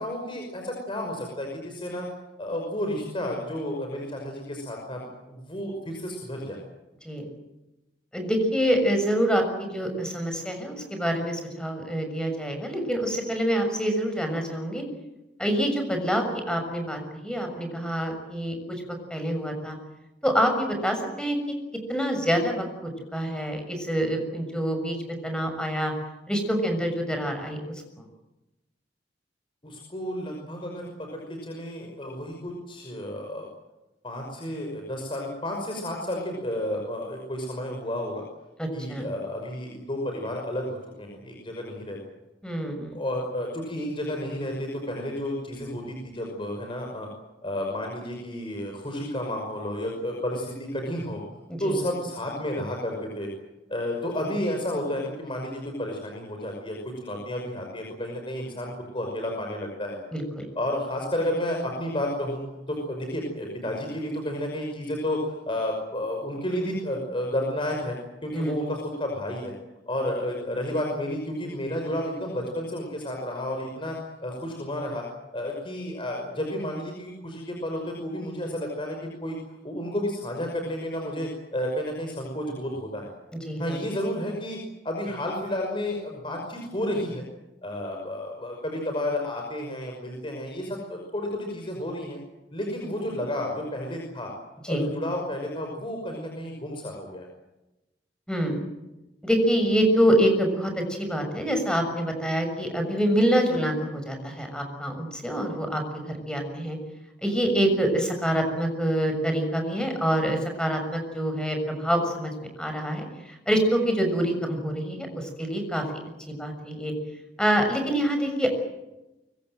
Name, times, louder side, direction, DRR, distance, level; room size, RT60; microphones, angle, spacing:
voice 1, 0.0-2.1 2.4-6.6 29.6-33.5 34.0-38.3 38.7-42.0 42.9-47.1 47.4-51.2 51.6-53.3 53.7-60.0 60.6-62.4 62.7-68.0 68.2-69.5 69.9-74.0 74.2-75.0 75.3-79.4 79.6-83.1 83.6-84.6 84.8-87.2 87.6-92.2 92.5-94.3 94.7-97.3, left 1 dB, 30° left, 1 dB, 5.6 m, -31 dB
voice 2, 8.1-14.8 15.4-18.6 19.1-19.8 20.2-21.4 21.9-25.0 25.2-25.9 26.3-27.6 28.0-28.1 38.6-39.1 42.4-42.9 51.5-51.8 60.1-60.5 68.3-68.5 83.4-83.8 94.6-94.8 98.3-98.6 99.2-106.8 107.2-112.3 112.6-113.1 113.5-115.8 116.3-116.9 117.4-118.5, equal, 5° left, 5 dB, 6.6 m, -26 dB
24.0 x 24.0 x 7.8 m, 0.98 s
head